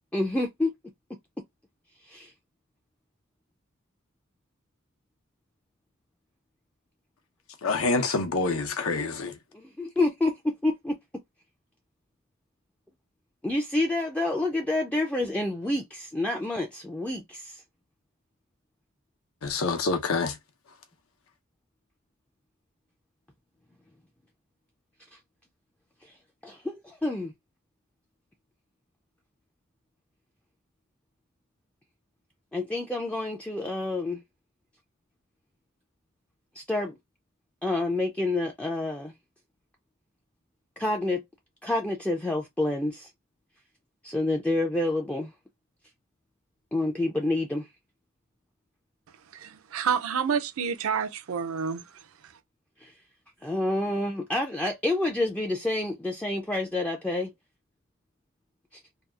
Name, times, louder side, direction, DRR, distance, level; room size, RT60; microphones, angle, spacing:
voice 1, 0.1-0.7 2.1-2.3 9.5-11.0 13.4-17.6 26.0-26.1 26.4-27.3 32.5-34.2 36.5-37.0 37.6-39.1 40.8-41.2 41.6-43.1 44.0-45.3 46.7-47.7 52.8-52.9 53.4-57.3, left 2 dB, 5° left, 0.3 m, -28 dB
voice 2, 7.6-9.3 19.4-20.3, left 3 dB, 90° left, 0.7 m, -26 dB
voice 3, 49.3-51.8, right 7 dB, 80° right, 0.5 m, -28 dB
2.7 x 2.3 x 2.3 m
head